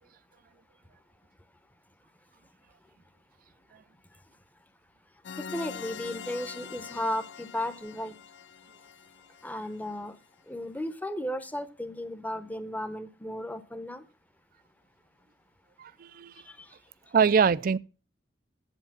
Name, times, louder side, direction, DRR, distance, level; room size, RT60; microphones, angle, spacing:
sound 1, 5.2-9.9, left 7 dB, 85° left, 0.5 m, -44 dB
voice 1, 5.4-8.2 9.4-10.2 10.5-14.1 16.4-16.8, left 1 dB, 10° left, 0.8 m, -35 dB
voice 2, 15.8-16.3 17.1-17.8, right 6 dB, 55° right, 0.4 m, -23 dB
8.1 x 8.0 x 6.0 m
head